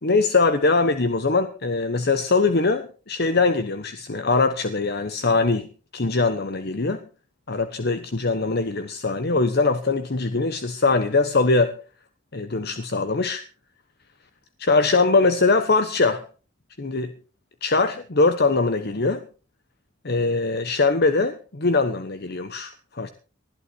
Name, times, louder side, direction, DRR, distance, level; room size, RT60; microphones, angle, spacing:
voice 1, 0.0-7.0 7.5-11.7 12.3-13.4 14.6-16.2 16.8-17.1 17.6-19.3 20.0-23.1, left 3 dB, 55° left, 10 dB, 1.1 m, -22 dB
20.0 x 11.5 x 4.6 m, 0.38 s
head